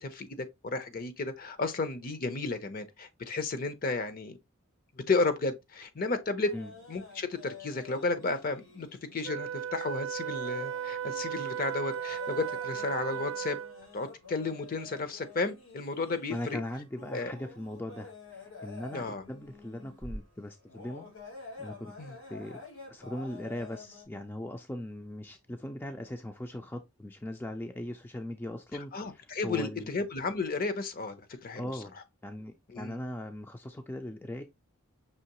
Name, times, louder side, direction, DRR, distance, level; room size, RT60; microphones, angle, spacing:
voice 1, 0.0-4.4 5.1-6.5 6.9-8.9 9.1-13.6 13.9-16.6 17.1-17.3 18.9-19.2 22.0-22.2 28.9-31.7 32.7-33.0, left 3 dB, 45° left, 0.6 m, -33 dB
sound 1, 6.4-24.0, left 3 dB, 90° left, 3.4 m, -49 dB
Wind instrument woodwind instrument, 9.2-13.9, right 9 dB, 65° right, 0.3 m, -36 dB
voice 2, 16.3-21.1 21.6-21.9 22.3-22.6 22.9-29.9 31.6-31.9 32.2-34.4, left 1 dB, 10° left, 0.4 m, -39 dB
5.6 x 3.0 x 2.9 m
head